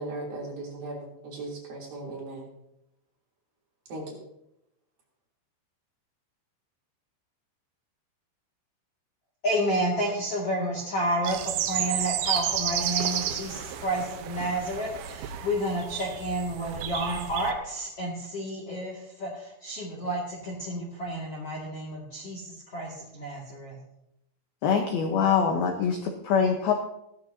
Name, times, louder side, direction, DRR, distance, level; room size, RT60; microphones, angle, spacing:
voice 1, 0.0-2.5 3.9-4.2, right 2 dB, 50° right, -3 dB, 4.6 m, -37 dB
voice 2, 9.4-23.8, right 1 dB, 45° left, -3 dB, 2.1 m, -30 dB
sound 1, 11.2-17.5, right 10 dB, 85° right, 2.2 m, -32 dB
voice 3, 24.6-26.7, left 6 dB, 75° left, 3 dB, 2.3 m, -24 dB
16.5 x 13.0 x 2.7 m, 0.83 s
omnidirectional pair, 5.7 m